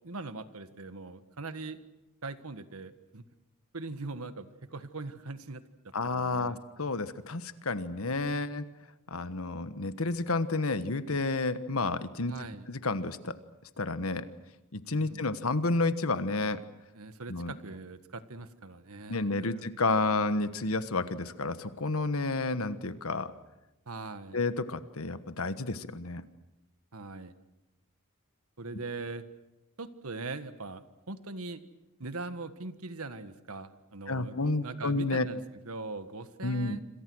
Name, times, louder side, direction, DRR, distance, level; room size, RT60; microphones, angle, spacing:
voice 1, 0.0-1.8 2.2-3.2 3.7-6.6 12.3-12.7 14.9-15.3 16.9-19.7 23.9-24.4 26.9-27.3 28.6-29.2 29.8-31.6 32.0-36.8, right 3 dB, 80° right, 11 dB, 1.5 m, -41 dB
voice 2, 5.9-8.6 9.1-12.4 12.7-13.4 13.8-14.3 14.7-16.6 17.3-17.5 19.1-23.3 24.3-26.2 34.1-35.3 36.4-36.8, left 3 dB, 75° left, 12 dB, 1.4 m, -30 dB
26.5 x 26.5 x 6.3 m, 0.96 s
head